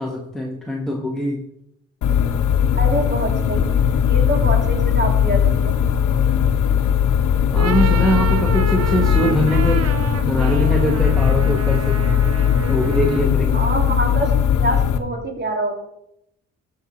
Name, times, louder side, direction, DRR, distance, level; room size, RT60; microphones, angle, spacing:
voice 1, 0.0-1.4 7.5-9.9 10.2-12.0 12.7-13.7, equal, ahead, -1 dB, 1.5 m, -22 dB
sound 1, 2.0-15.0, left 8 dB, 70° left, 1.0 m, -18 dB
voice 2, 2.8-5.7 13.5-15.8, right 1 dB, 35° right, 2 dB, 3.1 m, -25 dB
sound 2, 7.4-13.4, right 5 dB, 50° right, 1.0 m, -30 dB
13.0 x 5.8 x 4.3 m, 0.78 s
supercardioid pair, 60°, 31 cm